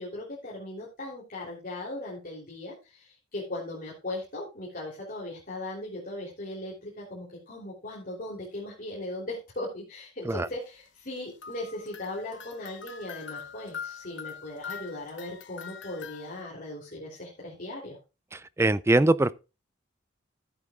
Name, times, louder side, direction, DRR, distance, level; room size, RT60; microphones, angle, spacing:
voice 1, 0.0-18.0, left 1 dB, 45° left, 3.3 m, -38 dB
sound 1, 11.4-16.4, left 7 dB, 65° left, 1.0 m, -43 dB
voice 2, 18.3-19.3, right 2 dB, 15° right, 0.4 m, -23 dB
14.5 x 8.6 x 2.4 m
head